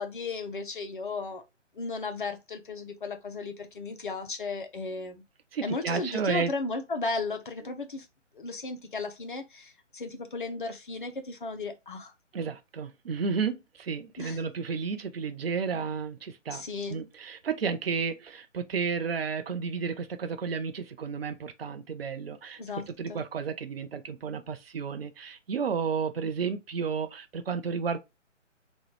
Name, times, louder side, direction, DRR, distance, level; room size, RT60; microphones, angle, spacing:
voice 1, 0.0-1.4 1.7-5.2 5.6-8.1 8.3-12.1 14.2-14.4 16.5-17.0 22.6-22.8 23.1-23.2, left 3 dB, 45° left, 0.5 m, -35 dB
voice 2, 5.5-6.5 12.3-16.6 16.9-22.6 22.9-28.0, right 6 dB, 50° right, 0.5 m, -32 dB
3.0 x 2.3 x 3.0 m
figure-of-eight pair, 140°, 38 cm